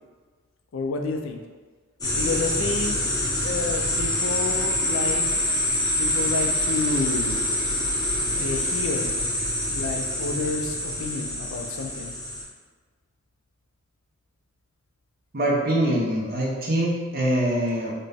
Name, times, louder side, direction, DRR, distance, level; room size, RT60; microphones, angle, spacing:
voice 1, 0.7-1.4 2.1-3.0 3.4-5.4 6.0-7.4 8.4-9.1 9.7-12.2, left 3 dB, 80° left, 4 dB, 0.4 m, -29 dB
sound 1, 2.0-12.4, left 1 dB, 20° left, 0.5 m, -26 dB
voice 2, 15.3-17.9, right 1 dB, 50° right, -3 dB, 0.7 m, -24 dB
4.0 x 2.1 x 3.4 m, 1.5 s
head